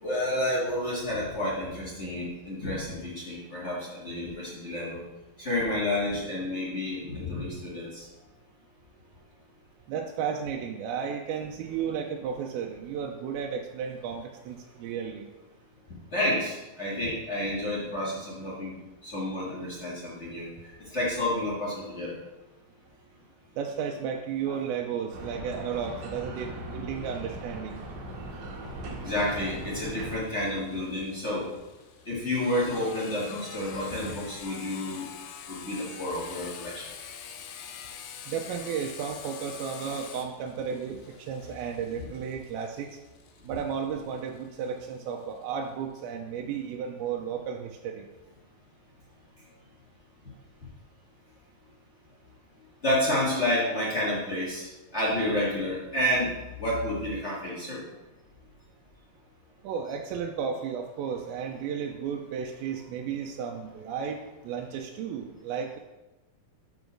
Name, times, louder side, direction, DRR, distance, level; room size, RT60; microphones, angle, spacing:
voice 1, 0.0-5.0 5.4-8.0 16.1-18.8 19.0-22.2 24.5-24.6 29.0-31.5 32.0-35.1 35.5-36.9 42.0-42.1 46.4-46.5 52.8-56.3 56.6-57.8, left 1 dB, 60° left, -7 dB, 0.7 m, -30 dB
voice 2, 9.9-15.3 23.6-27.8 38.3-43.0 43.4-48.0 59.6-64.2 64.4-65.8, right 7 dB, 90° right, 2 dB, 2.5 m, -33 dB
sound 1, 25.1-30.2, right 1 dB, 60° right, 2.5 m, -39 dB
Sawing, 29.2-44.6, left 8 dB, 85° left, 2.6 m, -46 dB
6.0 x 5.3 x 6.1 m, 1.1 s
omnidirectional pair, 4.3 m